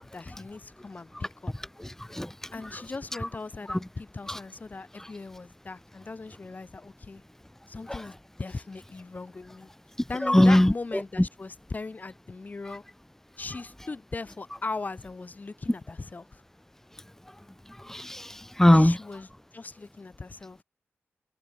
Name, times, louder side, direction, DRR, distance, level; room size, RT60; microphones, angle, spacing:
voice 1, 0.1-1.5 2.5-7.2 7.7-9.7 10.1-12.8 13.4-16.4 18.7-20.6, left 3 dB, 40° left, 6.7 m, -39 dB
voice 2, 1.8-2.8 3.7-3.8 4.3-4.4 5.0-5.1 7.9-8.1 10.2-11.0 17.7-19.0, left 1 dB, 10° left, 1.8 m, -22 dB
wide cardioid pair, 95°, 5 cm